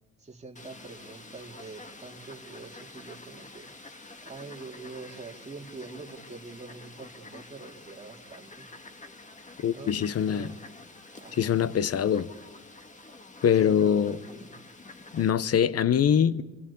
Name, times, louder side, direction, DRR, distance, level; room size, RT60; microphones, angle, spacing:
voice 1, 0.2-3.7 4.2-8.7 9.7-10.6 11.2-11.6 13.5-14.5, right 4 dB, 20° right, 3.1 m, -45 dB
Fowl, 0.6-15.3, left 2 dB, 25° left, 1.9 m, -48 dB
voice 2, 9.6-10.5 11.4-12.3 13.4-14.2 15.1-16.4, left 8 dB, 50° left, 1.0 m, -23 dB
27.0 x 24.5 x 8.6 m
cardioid pair, 90°, 30 cm